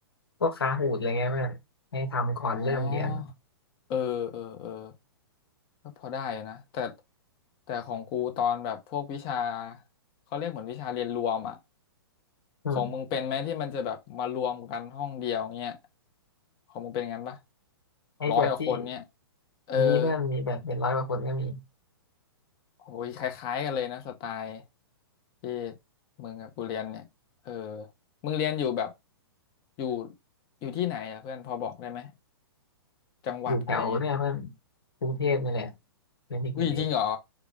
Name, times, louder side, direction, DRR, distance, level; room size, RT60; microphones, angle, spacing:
voice 1, 0.4-1.6 1.9-3.3 12.6-12.9 18.2-18.8 19.7-21.6 33.5-34.5 35.0-35.7 36.3-36.8, left 2 dB, 70° left, 1.2 m, -28 dB
voice 2, 2.5-3.3 3.9-4.9 6.0-6.9 7.7-9.8 10.3-11.6 12.7-15.8 16.7-17.4 18.3-19.0 19.7-20.2 22.8-24.6 25.4-25.7 26.2-27.1 27.4-27.9 28.2-28.9 29.8-30.1 30.6-32.1 33.2-34.0 36.6-37.2, left 8 dB, 35° left, 1.1 m, -31 dB
4.6 x 2.4 x 3.8 m
figure-of-eight pair, 110°, 13 cm